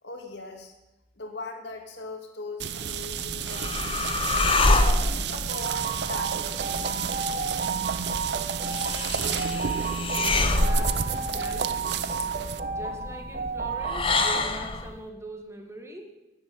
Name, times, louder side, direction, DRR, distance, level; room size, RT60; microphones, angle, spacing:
voice 1, 0.0-0.7 1.1-4.1 4.7-7.0, left 2 dB, 70° left, 3 dB, 2.4 m, -40 dB
sound 1, 2.6-12.6, right 7 dB, 65° right, 0.6 m, -32 dB
sound 2, 2.9-14.9, left 2 dB, 30° left, 0.8 m, -28 dB
sound 3, 5.6-14.6, right 5 dB, 40° right, 1.2 m, -32 dB
voice 2, 8.8-12.0 12.7-16.1, right 2 dB, 15° right, 3 dB, 1.6 m, -43 dB
11.5 x 8.0 x 9.5 m, 0.97 s
head